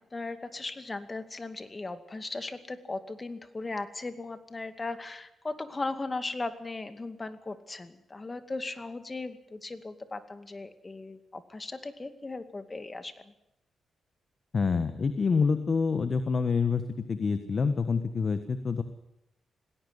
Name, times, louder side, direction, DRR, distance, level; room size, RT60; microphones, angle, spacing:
voice 1, 0.1-13.3, left 3 dB, 30° left, 10 dB, 2.3 m, -37 dB
voice 2, 14.5-18.8, left 5 dB, 50° left, 10 dB, 1.5 m, -27 dB
19.5 x 17.5 x 8.2 m, 0.87 s
cardioid pair, 80°, 0 cm